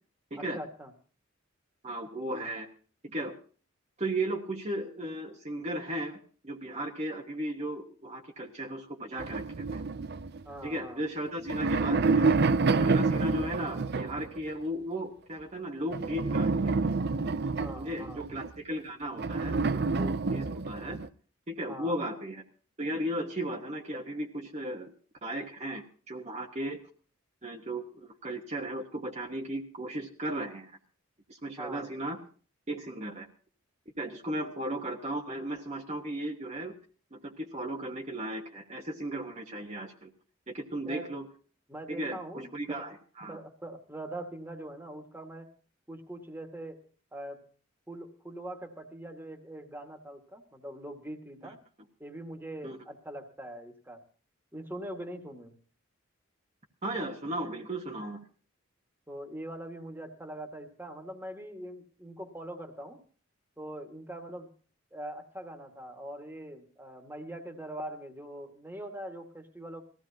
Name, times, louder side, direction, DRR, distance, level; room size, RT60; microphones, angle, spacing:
voice 1, 0.4-0.9 10.4-11.0 17.6-18.2 21.7-22.0 31.6-31.9 40.9-41.1 41.7-42.8 43.3-45.5 45.9-46.8 47.1-47.4 47.9-51.6 52.0-54.0 54.5-55.5 59.1-63.0 63.6-64.5 64.9-69.8, right 1 dB, 10° right, 5 dB, 1.8 m, -42 dB
voice 2, 1.8-2.7 3.0-3.3 4.0-9.8 10.6-12.3 12.8-16.8 17.7-21.0 21.5-22.4 22.8-24.9 25.2-26.8 27.4-30.8 31.3-32.2 32.7-33.3 34.0-36.7 37.1-40.1 40.5-41.3 41.9-43.4 52.6-52.8 56.8-58.3, right 1 dB, 35° right, 1 dB, 1.2 m, -36 dB
sound 1, 9.2-10.8 11.3-14.4 15.9-18.5 19.2-21.1, right 4 dB, 50° right, 0.5 m, -28 dB
19.5 x 15.5 x 2.8 m, 0.40 s
head